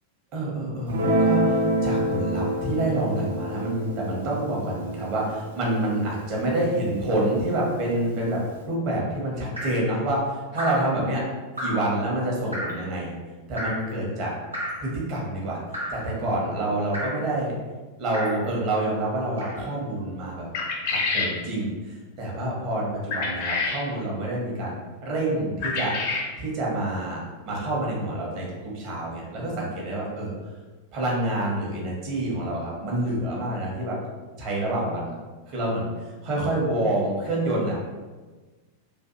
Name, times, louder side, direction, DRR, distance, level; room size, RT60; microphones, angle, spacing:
voice 1, 0.3-11.2 11.6-13.1 13.5-14.3 14.8-15.6 15.9-17.5 18.0-20.5 20.9-25.9 26.4-27.2 27.4-30.3 30.9-34.0 34.4-35.1 35.5-35.9 36.2-37.8, right 1 dB, 40° right, -3 dB, 0.8 m, -27 dB
Guitar, 0.9-7.5, right 1 dB, 60° right, 0.4 m, -27 dB
Drip, 9.6-9.9 10.6-10.9 11.6-11.9 12.5-12.8 13.6-13.9 14.5-14.9 15.7-16.1 16.9-17.3 18.1-18.5 19.4-19.7 20.6-20.8, equal, 85° right, 0.7 m, -32 dB
sound 1, 20.5-21.3 23.1-23.8 25.6-26.3, left 4 dB, 45° left, 0.4 m, -27 dB
2.6 x 2.4 x 2.5 m, 1.3 s
figure-of-eight pair, 90°, 0 cm